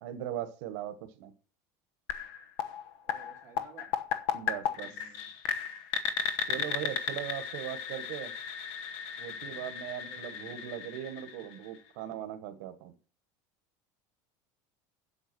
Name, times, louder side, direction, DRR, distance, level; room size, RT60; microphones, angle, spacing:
voice 1, 0.0-1.3 4.3-5.0 6.5-8.3 9.2-12.9, right 11 dB, 70° right, 8 dB, 1.3 m, -39 dB
sound 1, 2.1-11.9, left 8 dB, 60° left, 1.0 m, -35 dB
voice 2, 3.0-4.0 4.6-5.3 10.0-10.6, right 6 dB, 30° right, 1 dB, 2.4 m, -55 dB
8.0 x 7.0 x 6.1 m, 0.37 s
cardioid pair, 170°, 9 cm